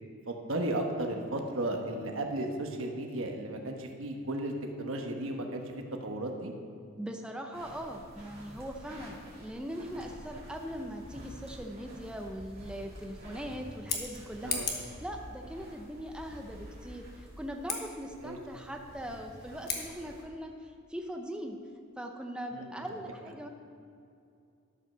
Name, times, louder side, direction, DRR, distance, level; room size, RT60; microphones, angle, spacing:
voice 1, 0.3-6.5 14.4-14.7 18.2-18.4 22.5-23.1, right 1 dB, 80° right, 3 dB, 1.2 m, -35 dB
voice 2, 7.0-21.6 22.0-23.5, equal, 5° right, 2 dB, 0.6 m, -41 dB
sound 1, 7.5-20.2, right 1 dB, 45° right, 2.8 m, -51 dB
sound 2, 10.1-13.3 14.0-17.3, equal, 20° right, 1.6 m, -51 dB
Scissors, 13.7-15.0 17.6-17.8 19.6-19.9, left 6 dB, 50° left, 1.3 m, -35 dB
12.5 x 5.5 x 6.1 m, 2.6 s
head